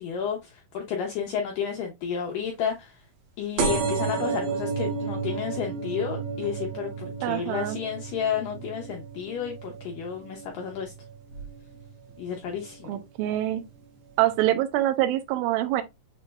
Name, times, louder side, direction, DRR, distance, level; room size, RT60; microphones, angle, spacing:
voice 1, 0.0-3.0 3.4-10.9 12.2-13.0, left 7 dB, 75° left, 2.0 m, -31 dB
sound 1, 3.6-10.8 11.3-11.8 12.6-12.7 12.9-13.0 13.2-13.3, right 5 dB, 70° right, 3.1 m, -31 dB
voice 2, 7.2-7.8 12.8-13.6 14.2-15.8, right 14 dB, 85° right, 2.1 m, -25 dB
6.9 x 3.2 x 2.3 m
omnidirectional pair, 4.8 m